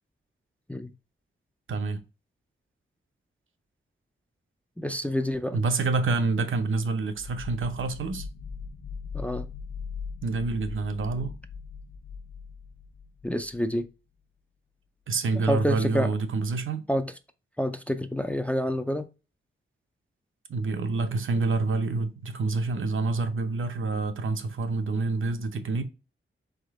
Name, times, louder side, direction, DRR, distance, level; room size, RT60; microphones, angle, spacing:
voice 1, 1.7-2.0 5.5-8.3 10.2-11.3 15.1-16.8 20.5-25.8, right 3 dB, 70° right, 0.7 m, -27 dB
voice 2, 4.8-5.6 9.1-9.5 13.2-13.9 15.5-16.1 16.9-17.1 17.6-19.0, equal, 5° left, 0.4 m, -28 dB
sound 1, 7.1-13.8, left 5 dB, 80° left, 0.7 m, -40 dB
3.8 x 3.6 x 3.5 m
wide cardioid pair, 85°, 21 cm